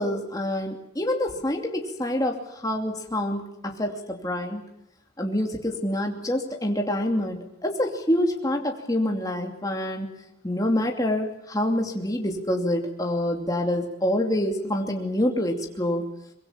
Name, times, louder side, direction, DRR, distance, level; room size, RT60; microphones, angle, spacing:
voice 1, 0.0-4.7 5.2-10.1 10.4-16.1, left 1 dB, 20° left, 1 dB, 2.7 m, -26 dB
24.0 x 23.0 x 7.4 m, 0.82 s
head